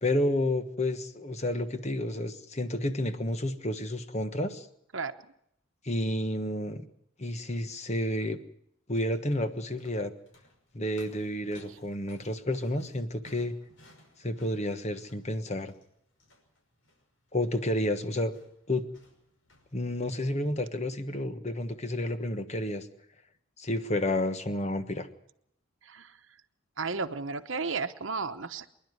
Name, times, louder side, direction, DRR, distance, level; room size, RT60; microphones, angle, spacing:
voice 1, 0.0-4.7 5.8-6.8 7.2-8.4 8.9-10.1 10.7-13.5 14.2-15.7 17.3-18.3 18.7-18.9 19.7-22.9 23.6-25.1, left 1 dB, 35° left, 9 dB, 1.3 m, -30 dB
sound 1, 9.5-20.2, left 1 dB, 65° left, 5.9 m, -59 dB
voice 2, 25.8-26.2 26.8-28.7, right 4 dB, 65° right, 7 dB, 1.0 m, -33 dB
26.0 x 11.5 x 9.7 m, 0.75 s
head